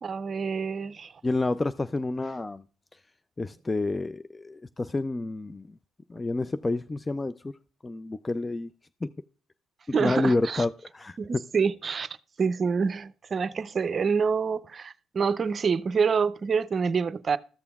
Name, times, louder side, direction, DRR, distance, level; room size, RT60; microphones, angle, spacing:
voice 1, 0.0-1.1 9.9-10.6 11.2-12.1 12.4-17.4, right 5 dB, 45° right, 0.5 m, -27 dB
voice 2, 1.2-2.6 3.4-5.7 6.1-7.5 7.8-8.7 9.0-9.1 10.0-11.2, left 2 dB, 25° left, 0.3 m, -29 dB
14.0 x 6.8 x 2.3 m
supercardioid pair, 65°, 0 cm